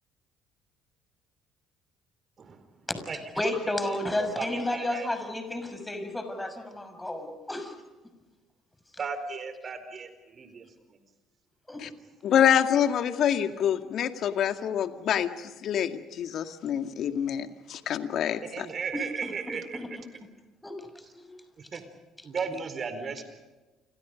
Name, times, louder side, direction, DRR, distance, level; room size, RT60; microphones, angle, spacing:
voice 1, 3.4-7.7 11.7-11.8 18.9-19.9 20.6-20.8 21.1-21.3, left 1 dB, 10° left, 8 dB, 6.3 m, -32 dB
voice 2, 3.9-5.1 9.0-10.6 18.4-20.0 21.7-21.8 22.2-23.2, right 5 dB, 45° right, 10 dB, 4.4 m, -35 dB
voice 3, 12.2-15.3 15.6-18.7, left 9 dB, 60° left, 8 dB, 2.1 m, -26 dB
29.5 x 27.0 x 5.2 m, 1.2 s
hypercardioid pair, 60°, 0 cm